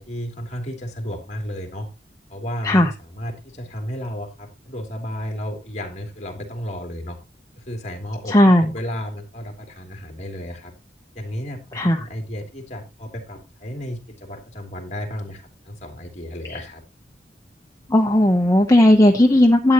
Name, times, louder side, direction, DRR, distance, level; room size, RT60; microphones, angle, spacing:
voice 1, 0.0-1.9 2.3-7.2 7.6-10.7 11.1-16.8, equal, 40° left, 3 dB, 3.0 m, -33 dB
voice 2, 8.3-8.7 11.7-12.0 16.5-16.6 17.9-19.7, left 1 dB, 20° left, 3 dB, 0.9 m, -15 dB
12.5 x 8.7 x 3.0 m, 0.26 s
head